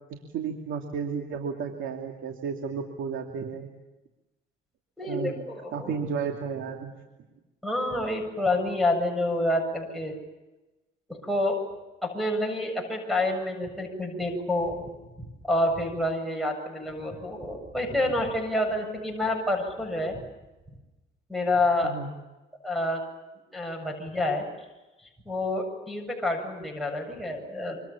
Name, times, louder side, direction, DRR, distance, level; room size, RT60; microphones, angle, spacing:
voice 1, 0.1-3.7 5.1-5.4 5.7-6.9 21.8-22.1, right 6 dB, 80° right, 3 dB, 2.9 m, -33 dB
voice 2, 5.0-5.9 7.6-10.1 11.1-11.6 12.0-14.8 15.4-20.2 21.3-21.9 22.6-23.0 23.5-24.4 25.3-27.8, left 1 dB, ahead, 0 dB, 7.4 m, -28 dB
27.0 x 26.0 x 7.2 m, 1.1 s
cardioid pair, 90°, 20 cm